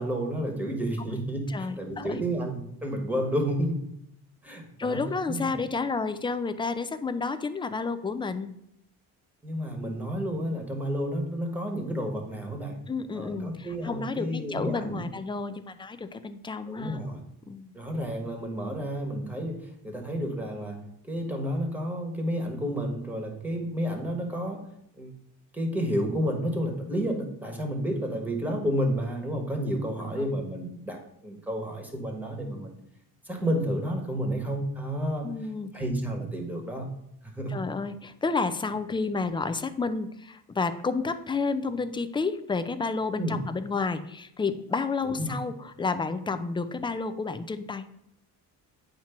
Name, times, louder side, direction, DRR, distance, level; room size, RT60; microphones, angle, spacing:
voice 1, 0.0-3.8 4.4-5.5 9.4-12.8 13.1-15.1 16.7-17.2 17.7-24.7 25.0-25.1 25.5-32.7 33.2-35.3 35.7-36.9 37.2-37.6 43.2-43.4 45.2-45.4, equal, 5° right, 2 dB, 1.3 m, -31 dB
voice 2, 1.5-2.2 4.8-8.5 12.9-17.0 17.5-17.7 30.1-30.3 35.2-35.7 37.5-47.8, left 4 dB, 15° left, 10 dB, 0.3 m, -31 dB
8.8 x 2.9 x 5.7 m, 0.76 s
cardioid pair, 115°, 40 cm